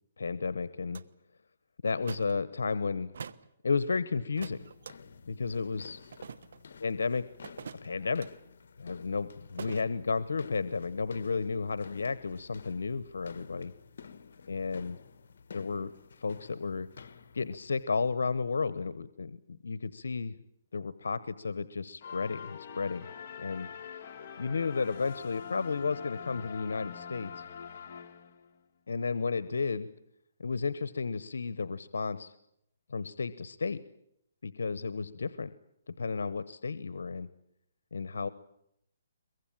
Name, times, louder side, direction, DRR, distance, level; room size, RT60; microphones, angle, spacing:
voice 1, 0.2-1.0 1.8-3.1 3.6-4.6 5.3-6.0 6.8-7.2 7.8-8.3 8.8-13.7 14.5-15.0 15.5-15.9 16.2-16.9 17.3-20.4 20.7-23.1 23.4-23.7 24.4-27.4 28.9-29.9 30.4-32.3 32.9-33.8 34.4-35.5 36.0-37.3 37.9-38.3, left 4 dB, 90° left, 16 dB, 1.0 m, -32 dB
sound 1, 0.9-1.0 2.0-2.4 3.1-3.5 4.4-4.9 6.1-6.6 7.4-8.3 9.6-9.9, right 6 dB, 70° right, 1.2 m, -44 dB
sound 2, 4.4-17.8, left 5 dB, 70° left, 1.4 m, -52 dB
sound 3, 22.0-28.6, left 7 dB, 45° left, 2.7 m, -44 dB
23.0 x 22.5 x 8.8 m, 0.77 s
hypercardioid pair, 155°, 0 cm